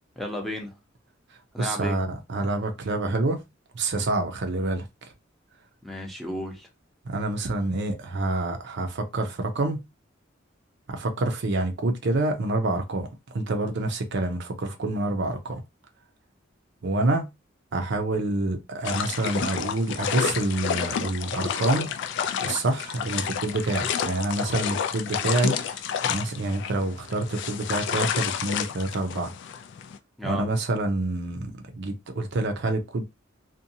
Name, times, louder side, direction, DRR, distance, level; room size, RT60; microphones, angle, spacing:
voice 1, 0.2-0.7 1.5-2.0 5.8-6.7 30.2-30.5, equal, ahead, 0.6 m, -33 dB
voice 2, 1.6-3.4 3.7-4.8 7.1-9.8 10.9-15.6 16.8-17.2 17.7-21.9 22.4-25.8 26.1-29.3 30.2-33.0, right 2 dB, 60° right, 0.5 m, -27 dB
sound 1, 18.8-30.0, left 8 dB, 65° left, 0.3 m, -30 dB
2.6 x 2.2 x 2.7 m
head